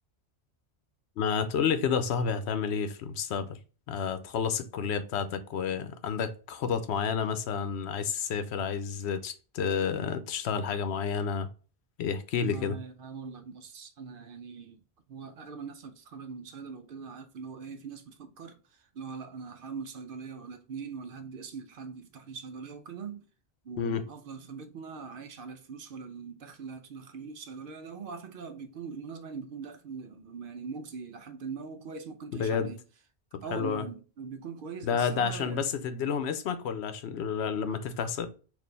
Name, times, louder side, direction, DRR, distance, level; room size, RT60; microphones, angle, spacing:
voice 1, 1.2-3.6 3.9-11.5 12.0-12.8 23.8-24.0 32.3-32.7 33.3-33.8 34.8-38.3, left 6 dB, 80° left, 0.9 m, -30 dB
voice 2, 12.4-14.8 15.1-23.3 23.6-32.8 33.4-35.6 37.6-37.8, right 5 dB, 65° right, 0.7 m, -42 dB
4.1 x 2.5 x 3.3 m
omnidirectional pair, 1.1 m